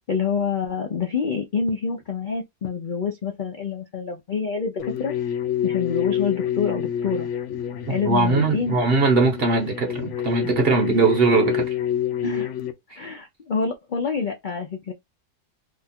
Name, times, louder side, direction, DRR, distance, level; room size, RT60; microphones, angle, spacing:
voice 1, 0.1-5.1 5.6-7.3 7.9-8.8 12.2-12.5 13.0-14.9, left 6 dB, 80° left, 0.4 m, -27 dB
sound 1, 4.8-12.7, left 10 dB, 65° left, 0.8 m, -28 dB
voice 2, 7.9-11.7, right 4 dB, 45° right, 0.9 m, -20 dB
2.8 x 2.4 x 4.2 m
omnidirectional pair, 1.7 m